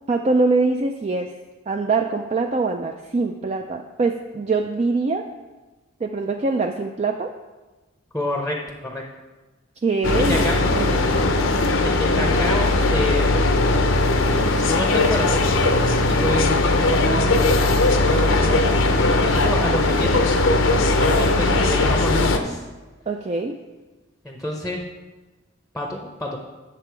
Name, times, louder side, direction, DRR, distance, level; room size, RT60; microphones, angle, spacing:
voice 1, 0.1-1.3 1.7-5.3 6.0-7.3 9.8-10.4 10.7-11.1 23.1-23.6, right 3 dB, 30° right, 4 dB, 0.3 m, -23 dB
voice 2, 8.1-9.0 10.3-10.6 11.8-13.7 14.5-15.5 15.8-20.3 20.9-22.6 24.2-24.8 25.7-26.4, left 1 dB, 5° left, 1 dB, 0.7 m, -28 dB
sound 1, 10.0-22.4, left 2 dB, 70° left, 0.7 m, -19 dB
8.4 x 6.8 x 4.6 m, 1.2 s
head